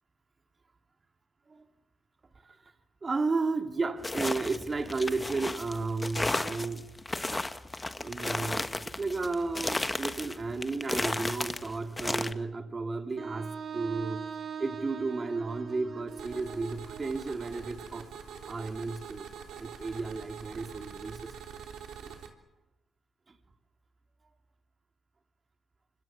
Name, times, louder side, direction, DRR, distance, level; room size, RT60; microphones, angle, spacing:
voice 1, 2.4-2.7 3.0-6.9 8.0-14.3 14.6-19.3 19.6-21.3 22.0-22.2 23.3-23.4, right 3 dB, 30° right, 6 dB, 2.5 m, -33 dB
sound 1, 4.0-12.3, left 2 dB, 15° left, 1.3 m, -34 dB
Wind instrument woodwind instrument, 13.2-17.2, right 6 dB, 50° right, 2.0 m, -41 dB
sound 2, 16.1-22.3, right 7 dB, 75° right, 3.6 m, -45 dB
26.0 x 25.5 x 7.4 m, 0.91 s
cardioid pair, 90°, 0 cm